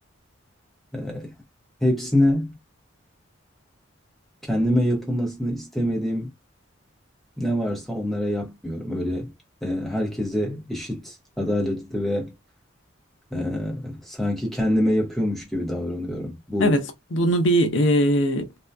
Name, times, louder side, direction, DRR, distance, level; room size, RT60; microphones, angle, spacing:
voice 1, 0.9-1.3 1.8-2.6 4.5-6.3 7.4-9.3 9.6-12.3 13.3-16.8, left 1 dB, ahead, 0.9 m, -25 dB
voice 2, 16.6-18.6, equal, 65° left, 0.6 m, -21 dB
2.7 x 2.2 x 2.2 m
head